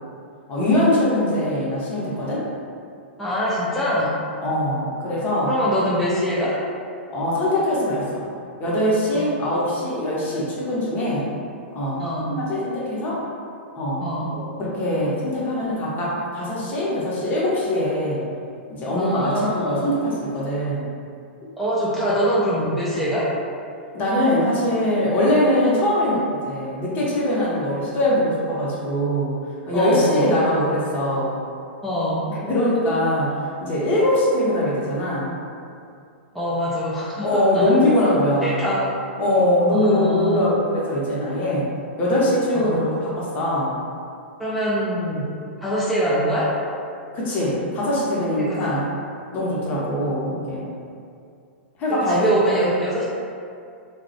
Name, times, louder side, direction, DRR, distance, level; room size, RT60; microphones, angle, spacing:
voice 1, 0.5-2.5 4.4-5.5 7.1-8.3 8.6-11.3 11.7-13.3 13.7-14.0 14.3-18.3 18.7-20.9 23.9-29.4 29.7-31.4 32.3-35.3 37.2-38.9 39.2-41.7 42.0-43.8 47.1-48.9 49.3-50.7 51.8-52.7, left 1 dB, 30° left, -6 dB, 0.7 m, -22 dB
voice 2, 3.2-4.1 5.5-6.6 9.1-9.8 12.0-12.3 14.0-14.3 19.0-20.0 21.6-23.3 29.7-30.5 31.8-32.2 36.3-37.7 38.4-38.9 39.7-40.4 42.5-42.8 44.4-45.3 45.6-46.5 48.4-48.7 51.9-53.0, equal, ahead, -9 dB, 0.3 m, -24 dB
2.3 x 2.0 x 2.6 m, 2.4 s
figure-of-eight pair, 110°, 6 cm